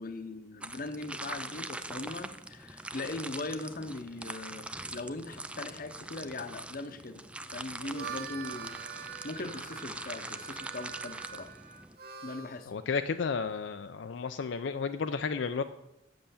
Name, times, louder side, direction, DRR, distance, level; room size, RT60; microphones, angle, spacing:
voice 1, 0.0-4.7 4.9-7.2 7.5-8.8 9.2-11.5 12.2-12.7, left 2 dB, 50° left, 9 dB, 0.8 m, -40 dB
sound 1, 0.6-12.0, right 2 dB, 5° right, 0.3 m, -43 dB
Harmonica, 7.8-12.6, right 7 dB, 55° right, 0.8 m, -44 dB
voice 2, 12.7-15.6, left 5 dB, 75° left, 8 dB, 0.4 m, -32 dB
7.8 x 6.9 x 7.0 m, 0.89 s
head